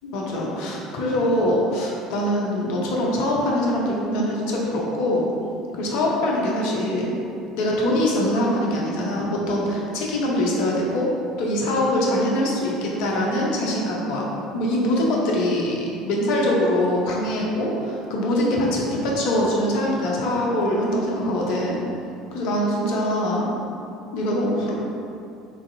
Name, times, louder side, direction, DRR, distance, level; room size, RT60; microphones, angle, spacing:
voice 1, 0.0-5.3 5.7-7.1 7.5-11.1 11.4-14.3 14.5-21.8 22.3-23.5 24.1-24.7, left 1 dB, 60° left, -3 dB, 0.6 m, -23 dB
3.8 x 2.6 x 2.5 m, 2.6 s
figure-of-eight pair, 65°, 0 cm